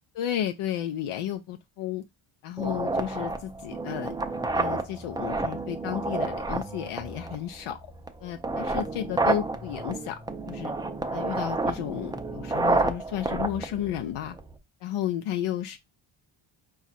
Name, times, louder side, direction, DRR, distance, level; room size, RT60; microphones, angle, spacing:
voice 1, 0.1-2.0 2.4-4.2 4.5-7.8 8.2-10.2 10.5-10.7 11.1-14.3 14.8-15.8, left 11 dB, 80° left, 0.6 m, -32 dB
sound 1, 2.6-14.6, right 3 dB, 10° right, 0.3 m, -30 dB
4.9 x 2.4 x 4.1 m
cardioid pair, 140°, 50 cm